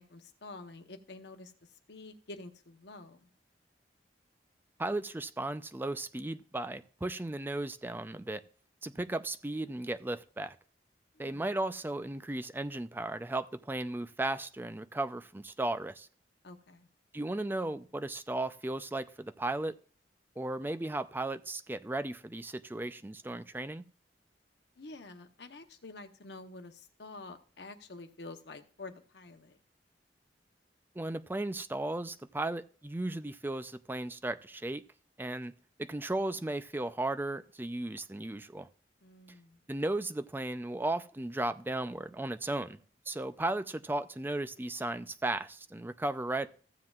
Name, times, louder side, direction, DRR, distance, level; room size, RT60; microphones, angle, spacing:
voice 1, 0.0-3.3 11.1-11.5 16.4-16.9 24.8-29.6 39.0-39.6, left 2 dB, 70° left, 1.0 m, -48 dB
voice 2, 4.8-8.4 8.8-10.6 11.2-16.1 17.1-19.7 20.4-23.8 31.0-34.8 35.2-35.5 35.8-38.7 39.7-42.8 43.1-46.5, right 2 dB, 10° right, 0.4 m, -35 dB
15.0 x 7.6 x 2.4 m
head